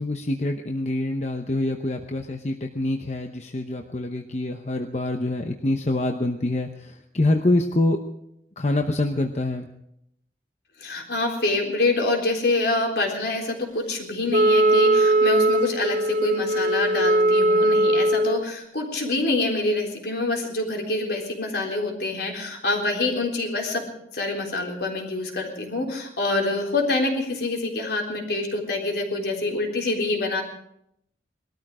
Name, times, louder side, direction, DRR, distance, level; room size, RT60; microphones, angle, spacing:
voice 1, 0.0-8.0 8.6-9.7, left 2 dB, 40° left, 4 dB, 0.9 m, -25 dB
voice 2, 10.8-23.9 24.1-30.4, left 2 dB, 70° left, 1 dB, 3.8 m, -26 dB
Wind instrument woodwind instrument, 14.3-18.4, right 1 dB, 45° right, 0.7 m, -20 dB
21.0 x 13.5 x 4.9 m, 0.76 s
head